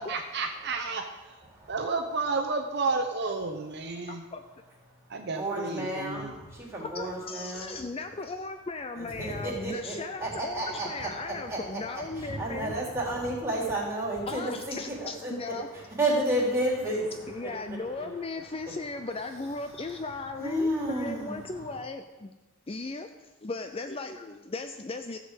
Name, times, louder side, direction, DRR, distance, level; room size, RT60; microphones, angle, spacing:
voice 1, 0.0-1.4 1.7-4.2 5.1-6.3, right 3 dB, 50° right, 4 dB, 0.8 m, -31 dB
voice 2, 4.1-4.4 6.8-12.7 14.3-15.7 17.3-22.3 22.7-25.2, left 3 dB, 25° left, 7 dB, 0.5 m, -37 dB
voice 3, 5.3-7.8 8.9-9.9 10.2-15.3 15.7-18.1 19.9-20.0 20.4-21.5, right 1 dB, 10° right, -5 dB, 3.5 m, -32 dB
14.5 x 5.0 x 8.2 m, 1.2 s
head